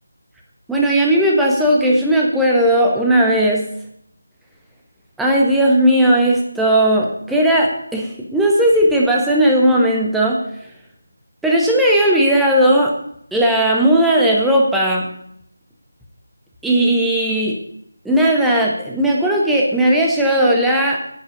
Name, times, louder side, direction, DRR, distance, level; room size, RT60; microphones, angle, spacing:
voice 1, 0.7-3.6 5.2-10.4 11.4-12.9 13.3-15.1 16.6-17.6 18.0-21.0, right 1 dB, ahead, -2 dB, 1.2 m, -16 dB
10.5 x 8.7 x 5.1 m, 0.68 s
figure-of-eight pair, 160°, 0 cm